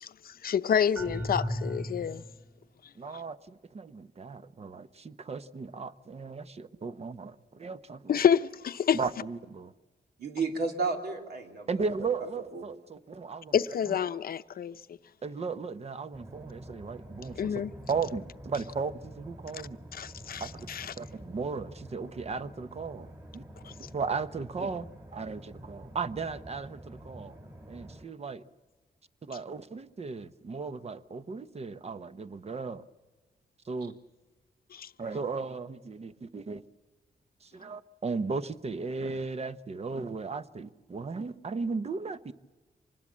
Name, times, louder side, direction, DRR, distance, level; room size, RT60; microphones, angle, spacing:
voice 1, 0.0-2.2 3.1-3.2 8.1-9.0 13.5-14.8 17.4-17.7 19.9-20.9 23.6-23.7 34.7-34.9, left 8 dB, 60° left, 0.7 m, -28 dB
sound 1, 1.0-2.4, equal, 5° right, 2.0 m, -34 dB
voice 2, 3.0-8.2 8.9-9.7 11.7-13.5 13.8-14.0 15.2-19.8 20.4-20.7 21.0-23.1 23.3-23.4 23.9-24.9 25.1-27.4 27.7-28.4 29.2-32.8 33.6-34.0 35.0-36.6 37.4-42.3, right 4 dB, 40° right, 0.9 m, -36 dB
voice 3, 10.2-11.7 12.5-12.6, right 4 dB, 75° right, 3.4 m, -32 dB
sound 2, 16.1-28.0, right 1 dB, 20° right, 3.6 m, -48 dB
25.0 x 20.5 x 7.5 m
cardioid pair, 105°, 17 cm